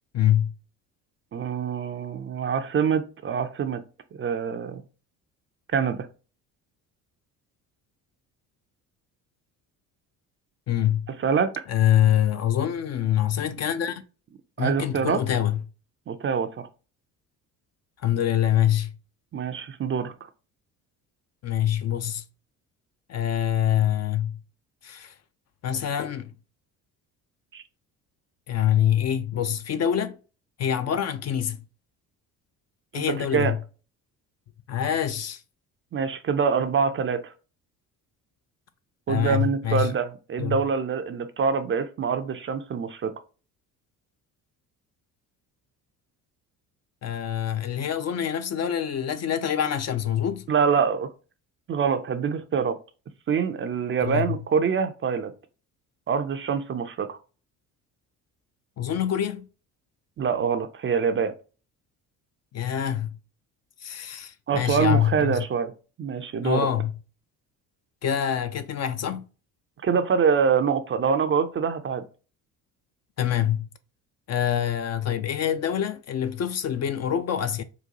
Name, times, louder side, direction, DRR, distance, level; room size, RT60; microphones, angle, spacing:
voice 1, 0.1-0.5 10.7-11.1 11.7-14.0 14.6-15.6 18.0-18.9 21.4-22.2 23.1-24.4 24.8-25.1 25.6-26.3 28.5-30.2 30.6-31.6 32.9-33.6 34.7-35.4 39.1-39.9 40.4-40.6 47.0-50.5 54.0-54.4 58.8-59.5 62.5-63.1 63.8-65.4 66.4-66.9 68.0-69.2 73.2-73.7 74.3-77.6, left 10 dB, 40° left, 0.4 m, -25 dB
voice 2, 1.3-3.8 4.1-4.8 5.7-6.1 11.1-11.5 14.6-15.2 16.1-16.7 19.3-20.1 27.5-27.6 32.9-33.5 35.9-37.3 39.1-43.1 50.5-51.1 51.7-52.8 53.3-55.3 56.1-57.2 60.2-61.3 64.5-65.7 66.0-66.7 69.8-72.0, right 6 dB, 30° right, 0.4 m, -25 dB
3.9 x 2.2 x 2.8 m
hypercardioid pair, 60°, 41 cm